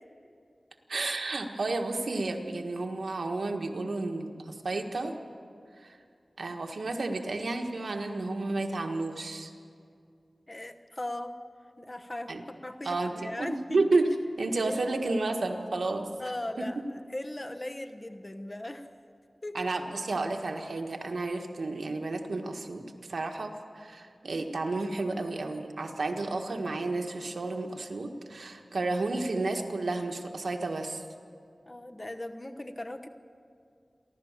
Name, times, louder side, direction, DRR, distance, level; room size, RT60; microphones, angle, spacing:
voice 1, 0.9-5.2 5.8-6.0 6.4-9.5 12.3-12.4 12.8-14.1 14.4-16.1 16.6-16.7 19.5-31.0, right 3 dB, 90° right, 3 dB, 1.5 m, -31 dB
voice 2, 10.5-11.3 11.8-13.8 14.7-14.9 16.2-18.9 19.4-19.6 31.7-33.1, left 1 dB, 30° left, 6 dB, 1.1 m, -38 dB
29.0 x 12.0 x 7.4 m, 2.4 s
wide cardioid pair, 80°, 0 cm